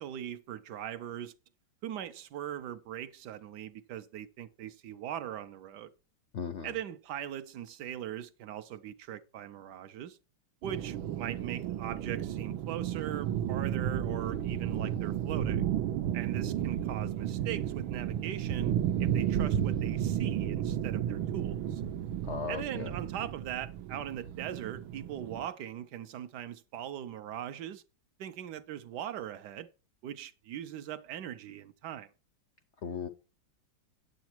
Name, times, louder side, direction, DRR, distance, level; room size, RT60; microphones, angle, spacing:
voice 1, 0.0-1.3 1.8-5.9 6.6-10.2 10.6-15.6 16.1-18.7 19.0-21.8 22.5-27.8 28.2-29.7 30.0-32.1, right 10 dB, 70° right, 1.1 m, -40 dB
voice 2, 6.3-6.7 22.2-22.9 32.8-33.1, left 6 dB, 75° left, 0.6 m, -37 dB
sound 1, 10.6-25.5, right 10 dB, 90° right, 1.5 m, -33 dB
9.2 x 7.8 x 4.4 m
omnidirectional pair, 2.1 m